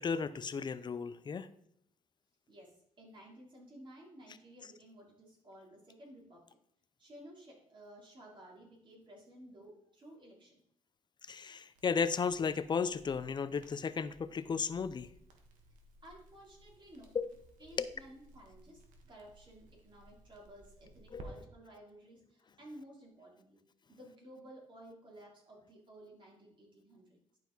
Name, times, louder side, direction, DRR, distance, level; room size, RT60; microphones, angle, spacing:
voice 1, 0.0-1.5 11.3-15.1 17.1-17.3 17.8-17.9 21.1-21.3, left 6 dB, 35° left, 14 dB, 0.5 m, -34 dB
voice 2, 2.5-6.4 7.0-10.6 16.0-17.1 17.6-23.6 23.9-27.2, right 1 dB, 40° right, -2 dB, 3.2 m, -55 dB
Crackle, 11.7-21.3, right 2 dB, 90° right, 1.4 m, -59 dB
11.0 x 4.8 x 3.9 m, 0.69 s
cardioid pair, 105°, 13 cm